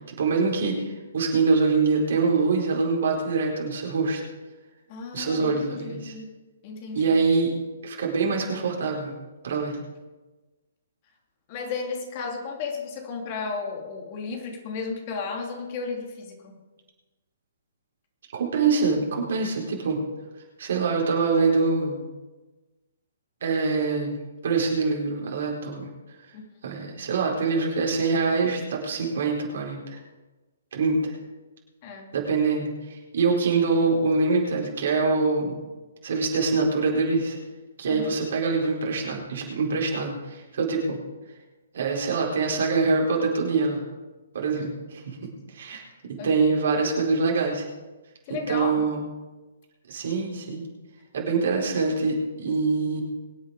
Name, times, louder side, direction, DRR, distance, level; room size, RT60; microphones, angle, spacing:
voice 1, 0.2-4.2 5.1-6.1 6.9-7.5 7.8-9.1 9.4-9.8 18.3-20.0 20.6-22.1 23.4-24.2 24.4-25.9 26.6-30.0 30.7-31.2 32.1-35.6 36.0-37.4 37.8-41.0 41.7-43.8 44.3-45.2 45.5-45.8 46.1-47.6 48.5-49.0 49.9-50.7 51.1-53.0, right 4 dB, 60° right, -1 dB, 4.5 m, -24 dB
voice 2, 4.9-6.3 6.6-7.2 11.5-16.6 26.3-26.5 31.8-32.1 37.8-38.2 46.2-46.4 48.3-48.8, left 4 dB, 40° left, 2 dB, 3.0 m, -34 dB
23.0 x 8.5 x 5.0 m, 1.2 s
figure-of-eight pair, 130°, 0 cm